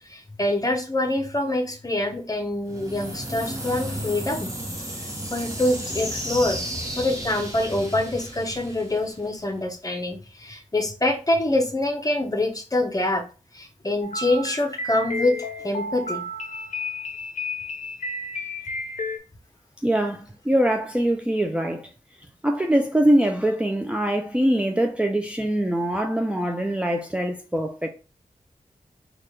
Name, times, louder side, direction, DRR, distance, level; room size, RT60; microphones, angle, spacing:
voice 1, 0.1-4.5 5.3-6.6 7.0-13.3 13.5-16.2, left 1 dB, 25° left, 0.8 m, -25 dB
sound 1, 2.6-9.5, equal, 25° right, 1.1 m, -33 dB
sound 2, 14.0-19.2, left 2 dB, 65° left, 0.6 m, -32 dB
voice 2, 19.8-21.9 22.4-27.9, right 1 dB, 10° right, 0.4 m, -23 dB
3.8 x 2.4 x 3.2 m
wide cardioid pair, 80°, 14 cm